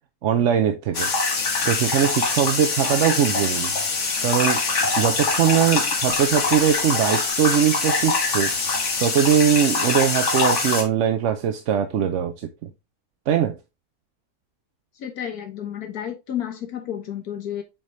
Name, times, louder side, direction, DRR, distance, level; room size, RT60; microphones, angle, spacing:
voice 1, 0.2-1.1 1.6-3.7 4.2-4.6 5.0-8.5 9.0-12.7 13.3-13.6, right 9 dB, 60° right, 0.9 m, -21 dB
sound 1, 0.9-10.8, left 4 dB, 55° left, 1.7 m, -23 dB
voice 2, 15.0-17.6, left 10 dB, 75° left, 1.6 m, -31 dB
7.4 x 4.8 x 2.6 m
omnidirectional pair, 1.6 m